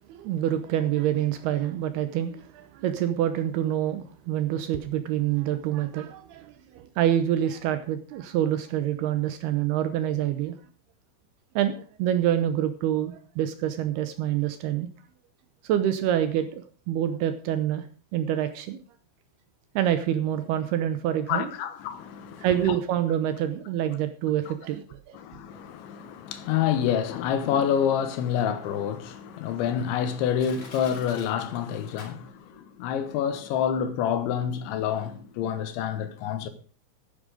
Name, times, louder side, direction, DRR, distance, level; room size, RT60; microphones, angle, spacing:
voice 1, 0.0-10.6 11.6-14.9 15.6-17.9 18.1-18.8 19.8-21.5 22.4-25.2, right 11 dB, 75° right, 2.5 m, -26 dB
voice 2, 21.3-22.7 25.1-36.5, left 8 dB, 80° left, 3.6 m, -28 dB
Crushing, 30.4-32.6 32.9-33.0, left 3 dB, 40° left, 5.2 m, -47 dB
11.5 x 10.0 x 5.0 m
omnidirectional pair, 5.2 m